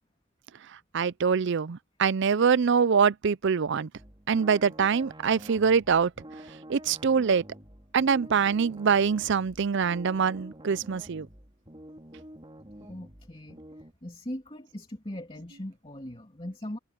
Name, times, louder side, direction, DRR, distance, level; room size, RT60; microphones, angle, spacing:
voice 1, 0.9-3.9 4.3-6.1 6.7-7.4 7.9-11.3, right 6 dB, 55° right, 0.5 m, -24 dB
sound 1, 3.9-13.9, right 1 dB, 25° right, 4.3 m, -48 dB
voice 2, 12.8-13.6 14.0-16.8, left 1 dB, 25° left, 2.7 m, -40 dB
head